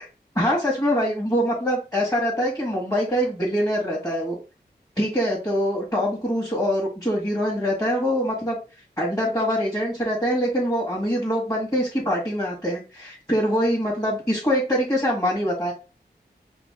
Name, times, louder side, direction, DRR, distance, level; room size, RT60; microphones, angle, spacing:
voice 1, 0.4-4.4 5.0-8.6 9.0-15.7, equal, 20° left, -6 dB, 1.9 m, -24 dB
5.1 x 2.4 x 3.7 m, 0.32 s
wide cardioid pair, 60°, 17 cm